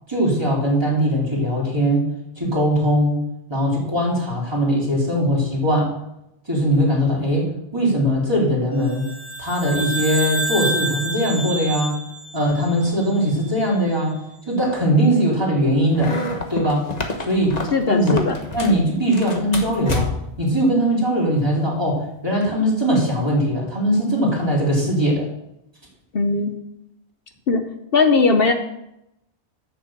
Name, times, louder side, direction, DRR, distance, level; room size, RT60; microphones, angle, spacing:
voice 1, 0.1-2.0 2.4-3.2 3.5-5.9 6.5-9.1 9.4-12.0 12.3-14.2 14.5-16.2 16.5-16.9 17.2-17.6 17.8-18.1 18.5-20.1 20.4-25.3, equal, 25° right, -4 dB, 3.8 m, -20 dB
sound 1, 8.9-13.4, right 1 dB, 15° left, 2.5 m, -28 dB
sound 2, 15.9-18.8 19.1-20.4, left 2 dB, 40° left, 1.4 m, -28 dB
voice 2, 17.7-18.3 26.1-26.6 27.5-27.6 27.9-28.5, left 4 dB, 60° left, 6 dB, 1.1 m, -18 dB
11.0 x 6.7 x 7.3 m, 0.84 s
omnidirectional pair, 1.1 m